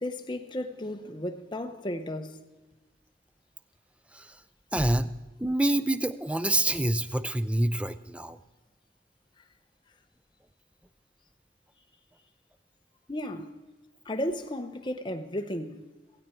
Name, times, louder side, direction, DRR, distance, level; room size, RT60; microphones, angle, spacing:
voice 1, 0.0-2.4 13.1-13.5 14.0-15.9, left 1 dB, 25° left, 0.9 m, -34 dB
voice 2, 4.7-5.1 5.4-8.4, right 1 dB, 5° right, 0.4 m, -26 dB
16.0 x 15.5 x 4.5 m
head